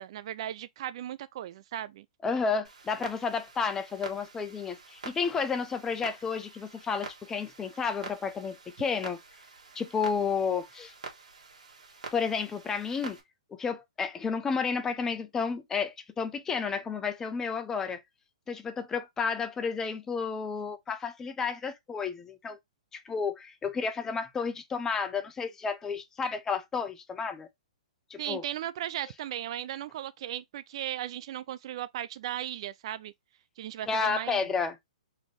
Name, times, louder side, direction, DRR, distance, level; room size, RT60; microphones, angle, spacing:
voice 1, 0.0-2.1 28.2-33.1 33.6-34.6, right 12 dB, 50° right, 0.4 m, -37 dB
voice 2, 2.2-9.2 9.8-10.9 12.1-13.2 13.5-18.0 18.5-22.6 22.9-27.5 28.1-28.4 33.9-34.8, left 5 dB, 15° left, 0.6 m, -31 dB
Clock, 2.6-13.2, right 4 dB, 90° right, 1.9 m, -47 dB
4.1 x 3.0 x 3.6 m
hypercardioid pair, 140°, 4 cm